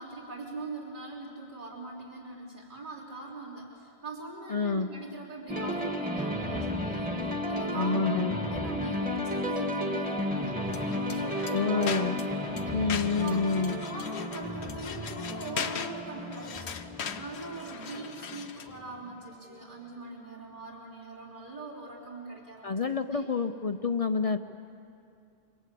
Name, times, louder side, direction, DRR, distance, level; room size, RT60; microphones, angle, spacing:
voice 1, 0.0-7.9 8.3-10.6 10.9-12.7 13.2-13.4 13.8-23.3, right 2 dB, 50° right, -3 dB, 4.1 m, -42 dB
voice 2, 4.5-4.9 7.7-8.3 11.5-12.2 12.7-13.8 22.6-24.4, left 4 dB, 40° left, 8 dB, 0.7 m, -28 dB
sound 1, 5.5-19.2, left 1 dB, 10° right, 1.9 m, -33 dB
sound 2, 10.6-18.8, left 7 dB, 90° left, 1.2 m, -40 dB
26.5 x 24.5 x 8.5 m, 2.5 s
omnidirectional pair, 1.1 m